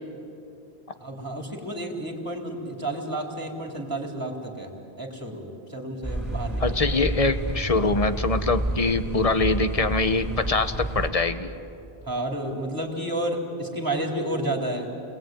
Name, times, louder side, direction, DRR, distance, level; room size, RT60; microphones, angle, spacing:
voice 1, 1.0-6.8 12.0-14.9, right 1 dB, 20° right, 1 dB, 3.7 m, -31 dB
sound 1, 6.0-11.1, right 1 dB, ahead, 4.2 m, -29 dB
voice 2, 6.6-11.5, left 3 dB, 35° left, 10 dB, 1.1 m, -24 dB
30.0 x 21.5 x 9.3 m, 2.8 s
omnidirectional pair, 1.1 m